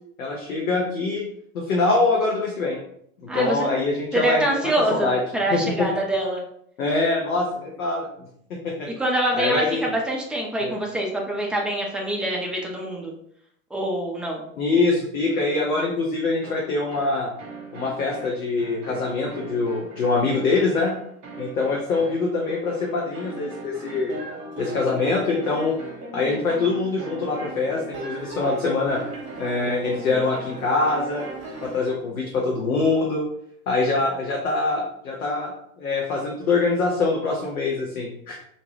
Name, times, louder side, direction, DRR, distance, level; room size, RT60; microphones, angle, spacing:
voice 1, 0.2-1.3 1.5-2.8 3.2-5.2 5.5-5.9 6.8-8.1 8.5-8.9 9.3-9.9 10.6-10.8 14.6-17.3 17.7-20.9 21.4-24.1 24.6-25.8 26.1-29.0 29.4-31.3 31.6-33.3 33.7-35.5 35.8-38.4, left 3 dB, 75° left, -1 dB, 0.7 m, -24 dB
voice 2, 3.3-3.6 4.1-6.4 9.0-13.1 13.7-14.5, right 1 dB, ahead, -1 dB, 0.3 m, -25 dB
sound 1, 16.4-31.9, right 2 dB, 35° right, 0.9 m, -38 dB
2.6 x 2.1 x 3.2 m, 0.70 s
figure-of-eight pair, 75°, 42 cm